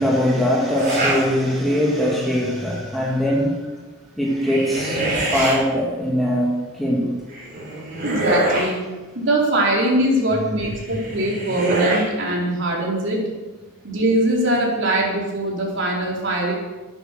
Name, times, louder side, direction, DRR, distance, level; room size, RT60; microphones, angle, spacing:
voice 1, 0.0-3.6 4.2-5.0 5.3-7.1 10.3-10.5, equal, ahead, -3 dB, 2.5 m, -21 dB
sound 1, 0.7-1.2 1.7-2.2 4.2-5.6 7.3-8.7 10.7-12.1, right 1 dB, 40° right, 5.6 m, -24 dB
voice 2, 8.0-8.8 9.1-13.2 13.8-16.5, right 1 dB, 55° right, -2 dB, 4.2 m, -21 dB
13.5 x 10.5 x 6.7 m, 1.2 s
head